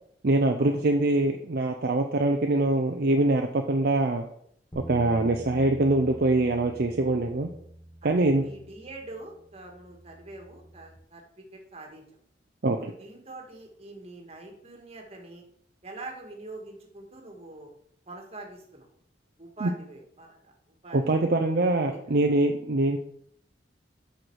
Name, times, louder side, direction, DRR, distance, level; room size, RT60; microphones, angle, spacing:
voice 1, 0.2-4.2 4.7-7.5 8.0-8.4 12.6-12.9 19.6-19.7 20.9-23.0, right 2 dB, 55° right, 4 dB, 0.6 m, -24 dB
sound 1, 4.7-11.0, equal, 20° left, 1.5 m, -45 dB
voice 2, 8.0-12.0 12.8-15.4 15.8-17.7 18.1-18.9 19.4-20.5 20.8-21.2 21.9-22.0, right 2 dB, 35° right, 2 dB, 1.8 m, -44 dB
7.8 x 5.8 x 4.7 m, 0.68 s
head